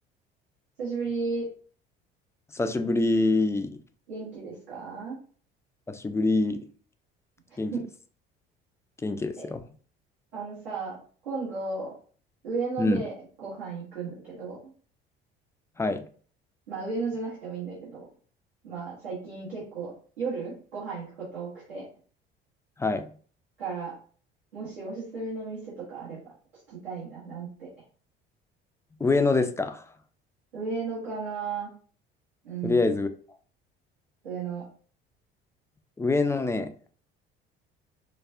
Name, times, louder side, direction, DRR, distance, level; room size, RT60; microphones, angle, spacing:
voice 1, 0.8-1.5 4.1-5.2 7.7-7.8 9.4-9.5 10.3-11.0 11.2-11.9 12.4-14.7 16.7-18.1 18.6-21.9 23.6-24.0 24.5-26.2 26.7-27.7 30.5-31.7 32.4-32.9 34.2-34.6, right 4 dB, 80° right, -9 dB, 1.6 m, -34 dB
voice 2, 2.5-3.7 5.9-6.6 7.6-7.7 9.0-9.6 12.8-13.0 15.8-16.0 22.8-23.1 29.0-29.9 32.6-33.1 36.0-36.7, left 3 dB, 10° left, 7 dB, 0.3 m, -25 dB
4.8 x 2.3 x 2.4 m, 0.44 s
figure-of-eight pair, 60°, 29 cm